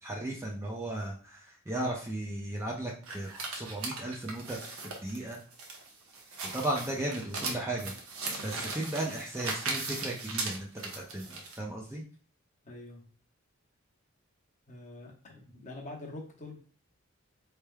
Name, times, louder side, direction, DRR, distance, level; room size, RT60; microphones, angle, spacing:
voice 1, 0.0-5.4 6.4-7.9 8.4-12.0, right 1 dB, 15° right, -2 dB, 0.5 m, -36 dB
sound 1, 3.0-11.6, right 3 dB, 90° right, 1.0 m, -38 dB
voice 2, 12.6-13.1 14.7-16.6, left 2 dB, 35° left, -1 dB, 0.9 m, -45 dB
4.3 x 3.3 x 2.3 m, 0.42 s
head